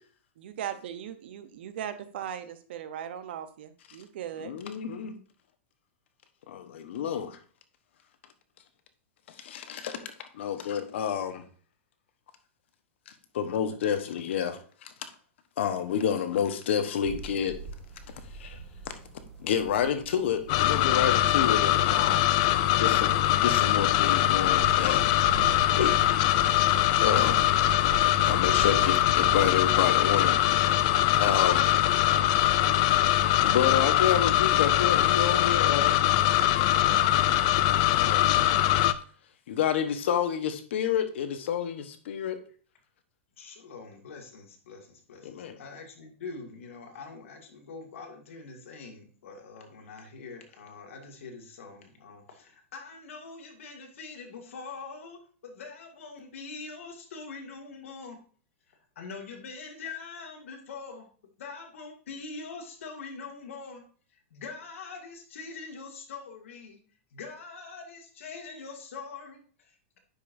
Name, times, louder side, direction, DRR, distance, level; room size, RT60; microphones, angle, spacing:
voice 1, 0.4-4.5, right 9 dB, 55° right, 11 dB, 0.8 m, -38 dB
voice 2, 4.4-5.1 6.5-7.4 9.4-11.4 13.1-14.9 15.6-17.5 18.4-18.6 19.4-22.3 22.7-23.1 23.4-25.0 25.3-25.9 27.0-27.5 28.3-31.7 33.4-36.0 37.9-38.3 39.5-42.4 45.2-45.6, left 8 dB, 60° left, 9 dB, 1.1 m, -29 dB
sound 1, 17.0-29.4, right 3 dB, ahead, 1.7 m, -42 dB
sound 2, 20.5-38.9, left 13 dB, 30° left, 0.3 m, -23 dB
voice 3, 43.4-58.2 58.7-61.1 61.4-63.8 64.3-66.8 67.1-70.0, left 4 dB, 75° left, 2 dB, 2.1 m, -43 dB
9.9 x 5.4 x 2.6 m, 0.43 s
supercardioid pair, 175°, 7 cm